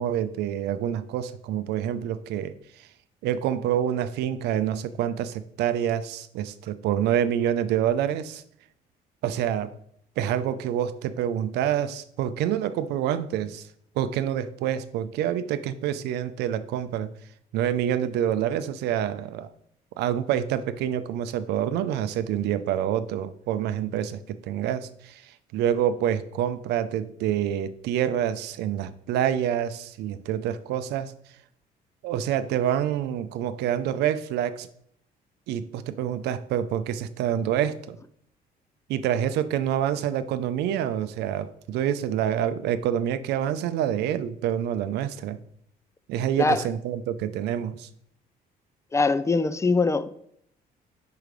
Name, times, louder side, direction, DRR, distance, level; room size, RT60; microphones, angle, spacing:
voice 1, 0.0-2.9 3.2-8.4 9.2-9.7 10.2-13.7 14.0-17.1 17.5-19.5 20.0-31.1 32.0-34.7 35.5-38.0 38.9-45.4 46.1-47.9, right 10 dB, 80° right, 0.5 m, -27 dB
voice 2, 48.9-50.2, left 3 dB, 15° left, 0.3 m, -22 dB
4.8 x 4.7 x 5.1 m
cardioid pair, 110°, 17 cm